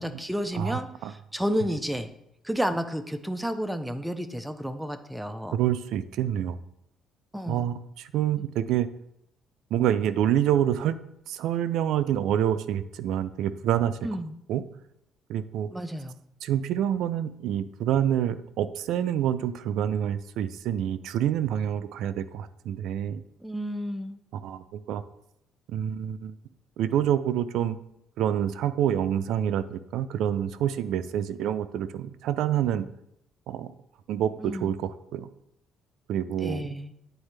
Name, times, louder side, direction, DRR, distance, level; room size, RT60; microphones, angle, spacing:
voice 1, 0.0-2.1 2.4-5.6 7.3-7.7 8.4-8.5 14.0-14.3 15.7-16.2 23.4-24.2 34.4-34.7 36.3-36.9, equal, 5° right, 8 dB, 0.4 m, -31 dB
voice 2, 0.5-1.1 5.5-6.6 7.5-8.9 9.7-11.0 11.3-14.0 14.5-14.6 15.3-15.7 16.4-23.2 24.3-25.0 25.7-26.3 26.8-27.8 28.2-32.9 33.5-33.7 34.1-35.3 36.1-36.6, right 10 dB, 75° right, 12 dB, 0.3 m, -27 dB
9.0 x 3.9 x 3.3 m, 0.79 s
cardioid pair, 140°, 0 cm